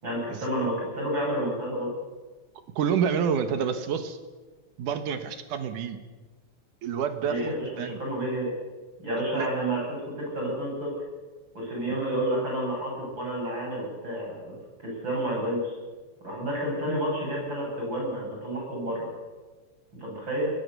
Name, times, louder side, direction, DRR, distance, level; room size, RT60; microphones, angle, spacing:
voice 1, 0.0-1.9 7.2-8.5 9.0-10.9 11.5-15.7 16.2-19.1 20.0-20.5, right 1 dB, 35° right, -2 dB, 8.6 m, -30 dB
voice 2, 2.8-4.2 4.8-6.0 6.8-7.5 7.8-8.0 9.3-9.5, right 7 dB, 90° right, 8 dB, 3.0 m, -28 dB
23.0 x 20.5 x 7.0 m, 1.3 s
omnidirectional pair, 3.5 m